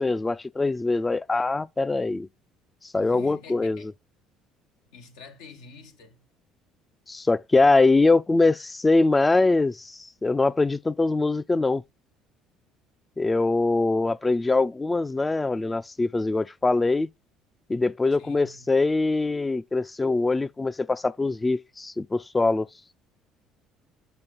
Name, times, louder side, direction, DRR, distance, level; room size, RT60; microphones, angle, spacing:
voice 1, 0.0-2.3 2.9-3.8 7.1-11.8 13.2-17.1 17.7-22.7, left 3 dB, 20° left, 0.3 m, -23 dB
voice 2, 3.0-3.9 4.9-6.2 18.2-19.0, left 4 dB, 80° left, 1.2 m, -47 dB
7.0 x 5.1 x 3.9 m
supercardioid pair, 75°, 0 cm